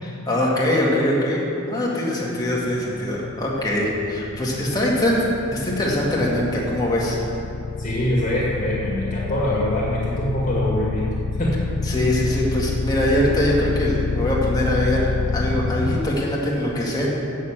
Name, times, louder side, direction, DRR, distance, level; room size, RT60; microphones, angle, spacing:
voice 1, 0.0-5.2 5.5-7.2 11.9-17.1, left 1 dB, 20° left, -5 dB, 1.8 m, -22 dB
sound 1, 3.1-16.0, left 4 dB, 70° left, 0.5 m, -27 dB
voice 2, 7.8-11.1 11.4-11.5, left 1 dB, 40° left, -6 dB, 2.0 m, -23 dB
8.4 x 6.4 x 7.3 m, 2.7 s
head